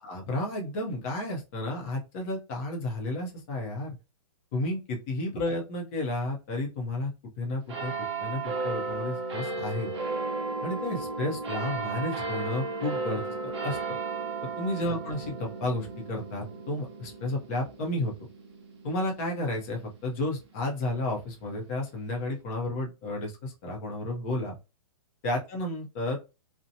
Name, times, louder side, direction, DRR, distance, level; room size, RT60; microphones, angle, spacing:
voice 1, 0.0-4.0 4.5-7.1 7.4-7.9 8.2-9.9 10.6-13.2 13.6-13.8 14.6-18.1 18.8-24.6 25.2-26.2, left 1 dB, 20° left, 0 dB, 0.6 m, -32 dB
sound 1, 7.7-20.6 21.2-21.3, right 3 dB, 45° right, 0.8 m, -35 dB
2.8 x 2.1 x 2.6 m, 0.28 s
hypercardioid pair, 165°, 19 cm